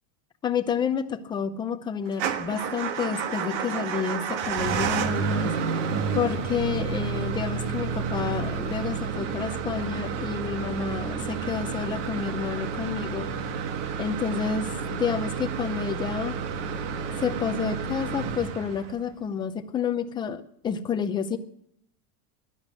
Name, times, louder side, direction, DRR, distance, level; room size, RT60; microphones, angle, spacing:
voice 1, 0.4-5.5 6.1-13.3 14.0-16.4 17.2-21.4, left 7 dB, 10° left, 9 dB, 0.5 m, -29 dB
Motor vehicle (road) / Engine starting / Idling, 2.1-19.1, right 7 dB, 60° right, 1.6 m, -30 dB
sound 1, 3.0-12.2, left 14 dB, 70° left, 1.3 m, -44 dB
16.5 x 11.5 x 6.3 m, 0.71 s
supercardioid pair, 175°, 41 cm